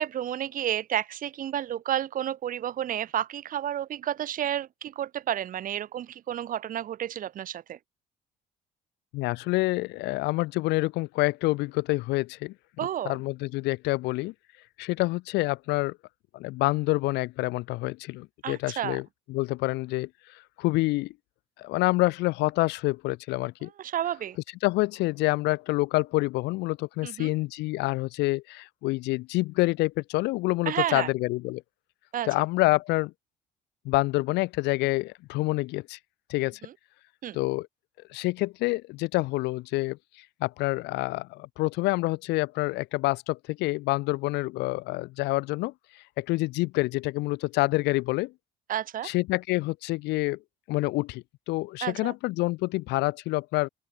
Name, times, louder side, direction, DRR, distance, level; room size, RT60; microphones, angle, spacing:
voice 1, 0.0-7.8 12.8-13.2 18.4-19.0 23.8-24.4 27.0-27.3 30.7-31.1 32.1-32.3 36.6-36.7 37.2-37.4 48.7-49.1 51.8-52.1, right 11 dB, 55° right, 1.3 m, -31 dB
voice 2, 9.1-12.5 13.0-14.3 14.8-16.0 16.3-20.1 20.6-21.1 21.6-23.7 24.6-31.6 32.2-33.1 33.8-36.0 36.3-36.6 37.3-37.7 38.1-40.0 40.4-45.7 46.2-48.3 49.0-50.4 50.7-53.7, left 21 dB, 90° left, 0.8 m, -27 dB
open air
cardioid pair, 110°, 17 cm